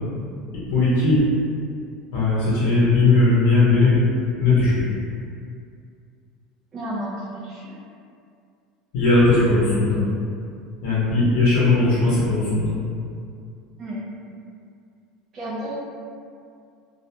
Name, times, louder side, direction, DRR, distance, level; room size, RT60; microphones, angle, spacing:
voice 1, 0.7-1.2 2.1-4.0 4.4-4.9 8.9-10.0 10.8-12.8, left 3 dB, 80° left, -9 dB, 0.7 m, -18 dB
voice 2, 6.7-7.7 13.8-14.0 15.3-15.8, right 1 dB, 35° right, -9 dB, 0.5 m, -31 dB
2.4 x 2.0 x 2.7 m, 2.4 s
supercardioid pair, 125°, 0 cm